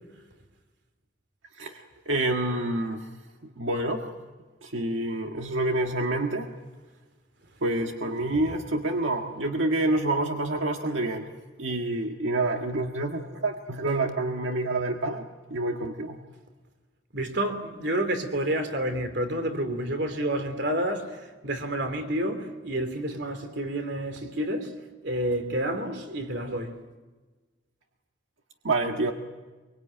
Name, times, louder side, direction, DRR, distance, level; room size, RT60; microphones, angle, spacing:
voice 1, 1.6-3.1 3.6-4.1 4.6-6.5 7.6-11.3 11.6-15.2 15.5-16.2 28.6-29.1, right 2 dB, 90° right, 1.7 m, -27 dB
voice 2, 17.1-24.8 25.0-26.8, right 1 dB, 65° right, 2.9 m, -29 dB
24.5 x 23.5 x 9.0 m
head